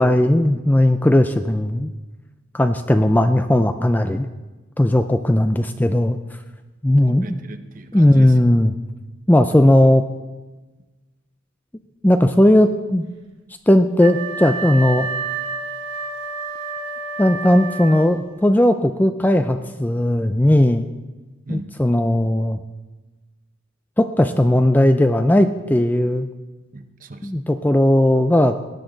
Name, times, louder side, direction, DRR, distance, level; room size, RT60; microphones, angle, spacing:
voice 1, 0.0-1.9 2.5-4.3 4.8-6.2 6.8-7.4 7.9-8.7 9.3-10.0 12.0-13.0 13.7-15.1 17.2-20.9 21.5-22.6 24.0-26.3 27.2-28.6, left 1 dB, 10° left, 8 dB, 0.4 m, -16 dB
voice 2, 7.1-8.4 21.5-21.7 26.7-27.3, right 2 dB, 40° right, 8 dB, 0.7 m, -37 dB
Wind instrument woodwind instrument, 14.0-18.4, right 4 dB, 70° right, 1.6 m, -29 dB
18.5 x 10.0 x 3.9 m, 1.2 s
head